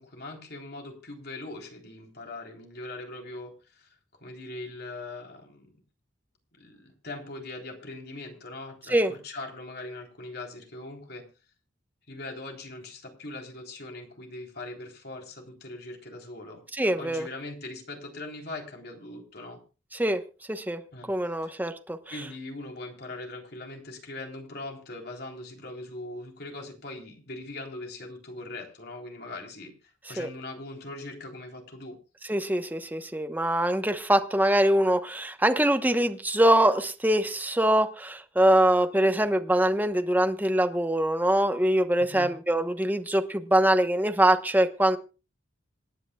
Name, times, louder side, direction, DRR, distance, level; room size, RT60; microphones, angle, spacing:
voice 1, 0.0-3.9 4.2-5.7 6.6-11.3 12.1-16.6 17.0-19.6 20.9-21.1 21.4-21.5 22.1-32.0 42.0-42.3, left 2 dB, 55° left, 1 dB, 3.8 m, -41 dB
voice 2, 16.8-17.3 19.9-20.2 20.5-20.8 21.1-22.0 30.2-30.3 32.3-45.0, right 1 dB, 10° right, 7 dB, 1.1 m, -23 dB
26.5 x 10.0 x 2.4 m, 0.33 s
head